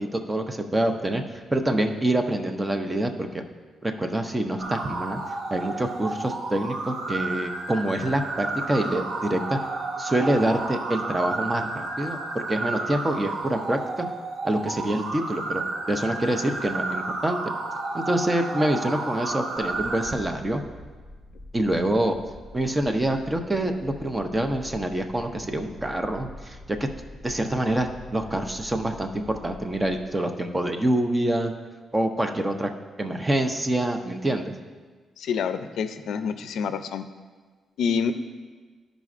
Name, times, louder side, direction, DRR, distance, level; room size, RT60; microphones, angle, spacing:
voice 1, 0.0-3.4 3.8-5.2 5.5-9.6 10.0-14.1 14.4-17.4 17.9-20.6 21.5-22.2 22.5-26.9 27.2-31.5 31.9-32.7 33.0-34.6, right 1 dB, 10° right, 5 dB, 0.5 m, -26 dB
sound 1, 4.6-20.1, right 3 dB, 90° right, 0.7 m, -32 dB
sound 2, 19.6-30.1, left 1 dB, 35° right, 1.6 m, -45 dB
voice 2, 35.2-37.0 37.8-38.1, left 6 dB, 85° left, 10 dB, 0.4 m, -27 dB
12.0 x 5.1 x 2.4 m, 1.4 s
wide cardioid pair, 165°, 0 cm